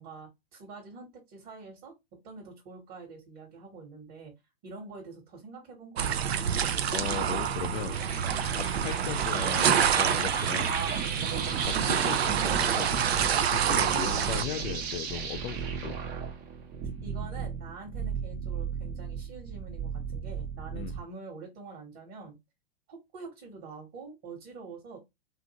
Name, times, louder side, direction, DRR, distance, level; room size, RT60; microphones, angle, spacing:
voice 1, 0.0-1.9 2.2-4.3 4.6-6.2 17.0-22.4 22.9-25.0, right 4 dB, 50° right, 1.3 m, -46 dB
sound 1, 6.0-14.4, right 8 dB, 85° right, 0.5 m, -27 dB
voice 2, 6.9-8.0 8.5-10.8 11.6-13.0 13.5-16.0 20.7-20.9, left 11 dB, 55° left, 0.4 m, -37 dB
sound 2, 7.9-21.0, right 6 dB, 30° right, 0.6 m, -35 dB
2.7 x 2.4 x 2.8 m
hypercardioid pair, 105°, 31 cm